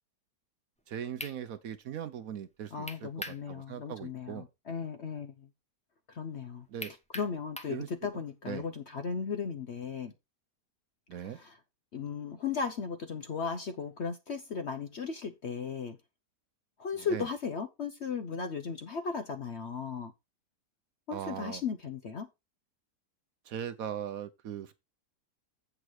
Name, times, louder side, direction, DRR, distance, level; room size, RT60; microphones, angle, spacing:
sound 1, 0.8-0.9 1.2-1.4 2.9-3.4 3.8-3.9 6.8-7.8, equal, 5° left, 0.8 m, -41 dB
voice 1, 0.9-4.5 6.7-6.9 7.7-7.9 8.5-8.7 11.1-11.4 17.1-17.3 21.1-21.6 23.5-24.7, right 9 dB, 65° right, 1.0 m, -39 dB
voice 2, 2.7-5.5 6.1-6.7 7.1-10.1 11.2-11.6 11.9-16.0 16.8-20.1 21.1-22.3, left 5 dB, 55° left, 0.8 m, -36 dB
8.0 x 6.0 x 4.7 m
omnidirectional pair, 1.8 m